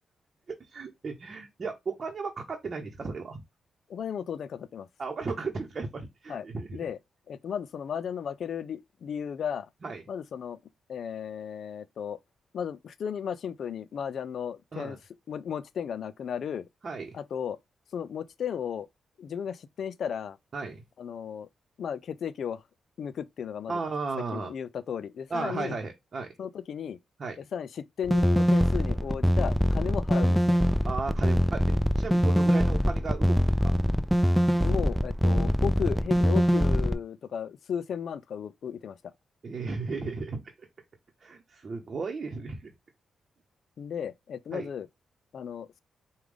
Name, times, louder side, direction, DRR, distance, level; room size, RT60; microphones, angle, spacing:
voice 1, 0.6-3.4 5.0-6.8 9.8-10.0 14.7-15.0 16.8-17.1 20.5-20.8 23.7-24.5 25.3-26.3 27.2-27.4 30.8-33.8 39.4-40.4 41.2-42.7 44.5-44.7, right 4 dB, 50° right, 0.9 m, -35 dB
voice 2, 3.9-4.9 6.3-6.5 6.7-7.0 7.3-9.7 10.1-10.6 10.9-12.2 12.5-15.0 15.3-16.7 17.1-17.6 17.9-18.9 19.2-20.4 21.0-21.5 21.8-22.6 23.0-23.8 24.3-25.8 26.4-27.0 27.5-30.6 34.6-39.0 43.8-44.9 45.3-45.8, left 8 dB, 70° left, 0.4 m, -35 dB
sound 1, 28.0-36.9, equal, ahead, 0.5 m, -23 dB
4.9 x 2.3 x 3.5 m
cardioid pair, 70°, 0 cm